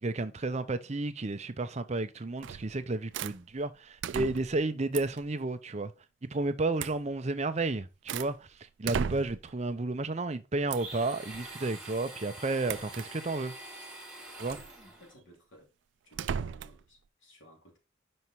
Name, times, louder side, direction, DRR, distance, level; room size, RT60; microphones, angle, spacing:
voice 1, 0.0-5.9 6.2-13.5 14.4-14.6, right 2 dB, 35° right, 0.6 m, -32 dB
sound 1, 2.4-2.7 3.1-3.4 4.0-4.6 4.9-5.2 6.8-7.0 7.6-8.4 8.8-9.5 10.7-11.0 12.7-13.1 14.4-14.7 16.1-16.8, right 7 dB, 70° right, 0.3 m, -36 dB
Domestic sounds home sounds, 10.7-15.1, right 2 dB, 5° right, 2.0 m, -46 dB
voice 2, 14.5-15.7 16.0-17.8, equal, 85° left, 3.4 m, -57 dB
5.6 x 5.5 x 4.6 m
head